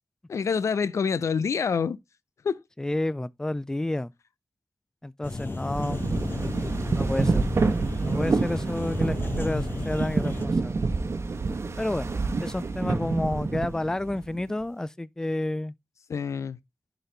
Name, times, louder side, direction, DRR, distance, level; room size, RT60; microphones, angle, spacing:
voice 1, 0.3-2.0 2.4-2.6 16.1-16.6, left 6 dB, 85° left, 0.5 m, -26 dB
voice 2, 2.8-4.1 5.0-6.0 6.6-7.4 8.0-10.8 11.8-12.1 12.4-15.7, left 1 dB, 10° left, 0.3 m, -30 dB
sound 1, 5.2-10.4, left 3 dB, 45° left, 1.2 m, -34 dB
sound 2, 5.7-14.5, right 3 dB, 65° right, 1.0 m, -28 dB
11.0 x 4.0 x 3.2 m
wide cardioid pair, 75°, 5 cm